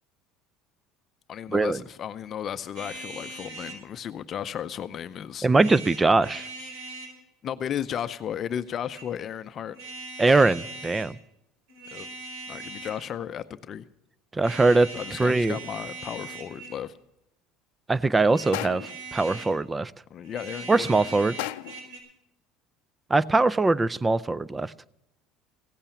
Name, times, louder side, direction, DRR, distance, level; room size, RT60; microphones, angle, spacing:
voice 1, 1.3-5.5 7.4-9.8 11.9-12.1 12.5-13.9 14.9-16.9 20.1-20.9, left 9 dB, 40° left, 11 dB, 0.6 m, -34 dB
sound 1, 2.8-3.8 5.5-7.2 8.7-9.1 9.7-11.1 11.7-13.1 14.4-16.8 18.2-19.6 20.2-22.0, right 3 dB, 80° right, 5.2 m, -40 dB
voice 2, 5.4-6.5 10.2-11.2 14.3-14.9 15.2-15.6 17.9-19.9 20.7-21.4 23.1-24.7, right 3 dB, 15° right, 20 dB, 0.4 m, -22 dB
sound 2, 18.5-19.1 21.4-22.0, left 18 dB, 85° left, 0.5 m, -34 dB
16.5 x 8.8 x 7.1 m, 0.86 s
cardioid pair, 130°, 0 cm